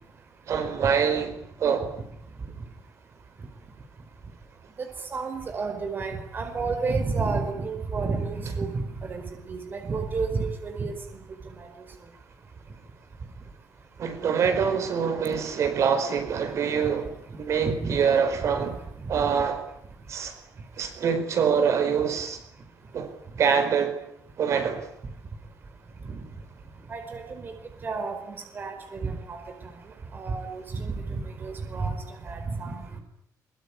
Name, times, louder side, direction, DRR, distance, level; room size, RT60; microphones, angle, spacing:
voice 1, 0.5-1.3 1.6-1.9 14.0-17.1 17.4-18.7 19.1-19.6 20.1-20.3 20.8-22.4 22.9-23.1 23.4-23.9 24.4-24.8, right 6 dB, 55° right, 9 dB, 5.0 m, -24 dB
voice 2, 4.8-9.2 9.5-10.9 11.6-11.7 17.6-18.0 18.5-18.6 19.1-19.2 26.1-26.2 26.9-27.5 27.8-29.7 30.1-32.0 32.2-33.0, right 4 dB, 35° right, 6 dB, 4.9 m, -31 dB
24.0 x 23.5 x 10.0 m, 0.72 s
cardioid pair, 165°, 6 cm